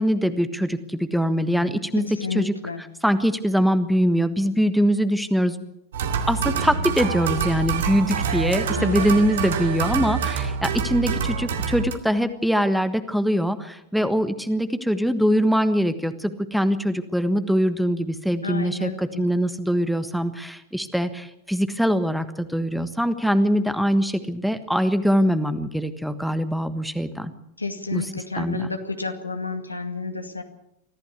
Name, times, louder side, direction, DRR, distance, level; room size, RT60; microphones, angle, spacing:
voice 1, 0.0-2.0 2.3-2.5 3.0-5.6 6.3-27.3 27.9-28.1 28.3-28.7, equal, ahead, 11 dB, 1.4 m, -23 dB
voice 2, 2.0-2.8 8.8-9.2 18.4-19.3 27.6-30.4, left 3 dB, 80° left, 6 dB, 2.2 m, -31 dB
sound 1, 5.9-12.0, right 6 dB, 60° right, 2.3 m, -26 dB
23.5 x 15.0 x 8.3 m, 0.79 s
figure-of-eight pair, 90°, 0 cm